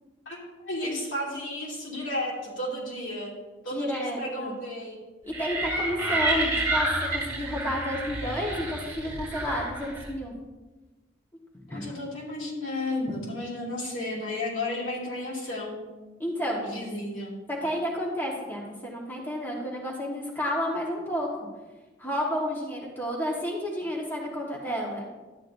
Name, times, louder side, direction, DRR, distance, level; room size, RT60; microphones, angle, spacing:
voice 1, 0.2-3.3 3.6-5.0 5.7-6.2 11.7-15.8 16.6-17.3, left 1 dB, 80° left, -5 dB, 2.7 m, -33 dB
voice 2, 3.7-4.6 5.2-10.3 11.7-11.8 16.2-16.6 17.5-21.3 22.0-25.0, equal, 10° left, -3 dB, 1.2 m, -31 dB
sound 1, 5.3-10.1, right 2 dB, 15° right, 3.1 m, -29 dB
12.0 x 8.8 x 2.6 m, 1.2 s
head